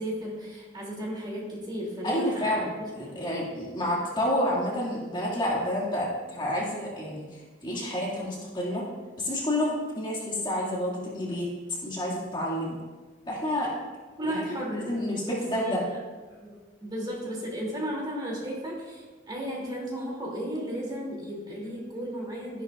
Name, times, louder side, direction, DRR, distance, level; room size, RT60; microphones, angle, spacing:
voice 1, 0.0-3.2 14.2-15.8 16.3-22.6, equal, 25° right, -4 dB, 3.0 m, -35 dB
voice 2, 2.0-8.8 9.2-11.5 11.8-12.8 13.3-13.7 14.2-14.4 14.7-15.8, left 1 dB, 25° left, -5 dB, 2.3 m, -29 dB
13.5 x 11.0 x 2.6 m, 1.3 s
head